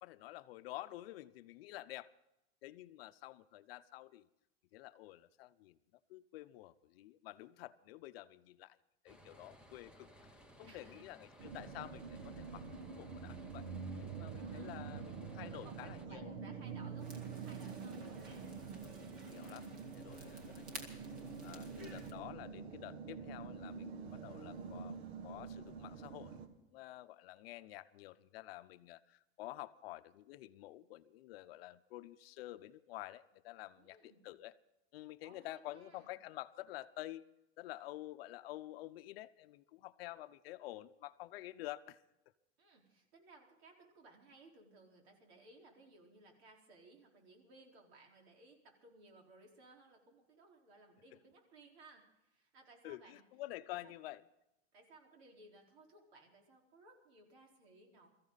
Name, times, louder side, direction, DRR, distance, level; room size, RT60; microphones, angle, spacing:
voice 1, 0.0-2.1 2.6-4.3 4.7-5.8 6.1-8.8 9.0-10.1 10.6-13.7 14.0-16.3 19.3-20.9 21.4-26.4 26.7-34.5 34.9-37.2 37.6-42.0 52.8-54.2, left 16 dB, 65° left, 13 dB, 0.7 m, -50 dB
sound 1, 9.1-16.1, equal, 5° right, 0.8 m, -60 dB
voice 2, 10.6-11.1 14.4-14.8 15.4-18.5 33.8-34.2 35.2-36.1 42.6-53.2 53.8-53.9 54.7-58.1, right 3 dB, 70° right, 1 dB, 4.4 m, -61 dB
sound 2, 11.4-26.5, right 5 dB, 85° right, 2.0 m, -46 dB
sound 3, 17.0-22.1, right 2 dB, 25° right, 2.1 m, -54 dB
23.0 x 14.5 x 4.0 m, 0.90 s
supercardioid pair, 170°, 32 cm